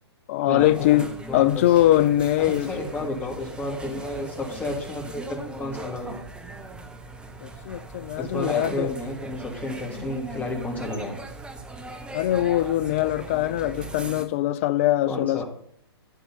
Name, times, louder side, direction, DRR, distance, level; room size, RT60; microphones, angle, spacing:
voice 1, 0.3-2.7 7.4-8.9 12.1-15.4, left 13 dB, 30° left, 0.5 m, -22 dB
sound 1, 0.6-14.3, right 2 dB, 5° right, 1.1 m, -39 dB
voice 2, 1.3-1.6 2.4-6.2 8.2-11.2 15.1-15.4, left 1 dB, 10° left, 2.8 m, -31 dB
13.0 x 9.2 x 4.2 m
figure-of-eight pair, 120°, 14 cm